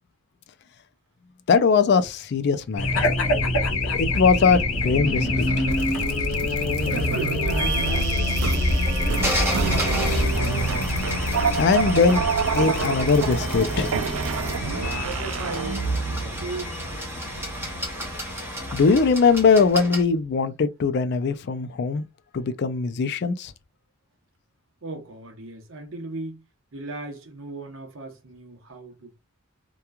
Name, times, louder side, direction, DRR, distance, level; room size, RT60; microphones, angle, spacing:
voice 1, 1.5-3.1 3.9-5.5 5.8-5.9 11.6-12.2 12.5-13.9 18.7-22.0 22.3-23.5, left 5 dB, 50° left, 0.3 m, -21 dB
Race car auto racing / Alarm, 2.8-19.7, left 2 dB, 80° left, 0.8 m, -26 dB
sound 1, 5.1-16.3, right 6 dB, 80° right, 0.4 m, -29 dB
voice 2, 6.8-8.3 15.0-16.8 24.8-26.4 26.7-29.1, right 3 dB, 65° right, 0.8 m, -36 dB
sound 2, 7.6-20.0, right 1 dB, 10° right, 0.7 m, -33 dB
2.9 x 2.2 x 2.3 m
head